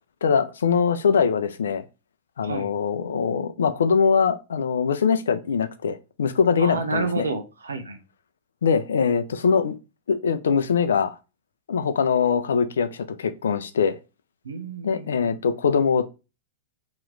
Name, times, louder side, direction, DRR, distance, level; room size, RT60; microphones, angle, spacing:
voice 1, 0.2-1.8 2.4-7.3 8.6-9.8 10.1-11.2 11.7-14.0 14.8-16.1, left 6 dB, 80° left, 0.5 m, -22 dB
voice 2, 6.6-8.0 14.4-15.3, right 4 dB, 85° right, 0.8 m, -30 dB
3.1 x 3.0 x 3.8 m
hypercardioid pair, 105°, 0 cm